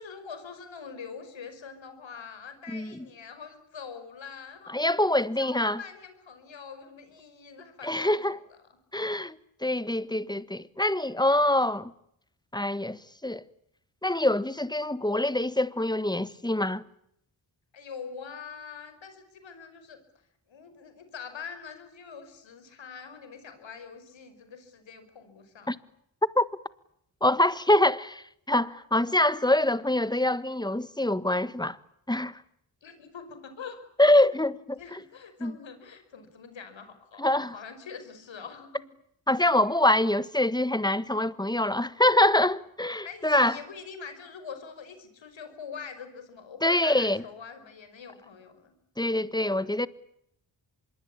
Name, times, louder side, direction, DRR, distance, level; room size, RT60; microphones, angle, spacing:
voice 1, 0.0-4.7 5.4-8.4 17.7-20.0 20.5-25.8 32.8-33.8 34.2-34.3 34.8-38.8 43.0-48.8, left 6 dB, 85° left, 5.7 m, -44 dB
voice 2, 2.7-3.0 4.7-5.8 7.8-8.4 8.9-9.4 9.6-11.9 12.5-13.4 14.0-16.8 25.7-25.8 26.3-26.5 27.2-31.8 32.1-32.4 34.0-35.0 35.4-35.6 37.2-37.6 39.3-43.6 46.6-47.2 49.0-49.9, left 1 dB, 10° left, 1.5 m, -25 dB
25.5 x 22.5 x 8.7 m
cardioid pair, 65°, 44 cm